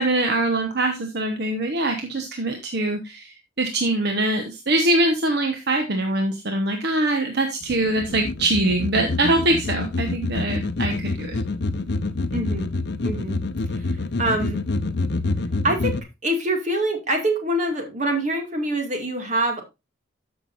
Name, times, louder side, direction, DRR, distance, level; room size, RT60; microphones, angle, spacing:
voice 1, 0.0-3.3 3.6-11.4, right 1 dB, 55° right, 5 dB, 1.1 m, -23 dB
Alien message capture, 7.6-16.0, left 3 dB, 60° left, 0.7 m, -27 dB
voice 2, 12.3-12.7 13.0-13.4 13.8-13.9 14.2-14.6 15.6-19.6, right 1 dB, 40° right, 4 dB, 2.1 m, -25 dB
13.0 x 6.1 x 2.5 m, 0.23 s
head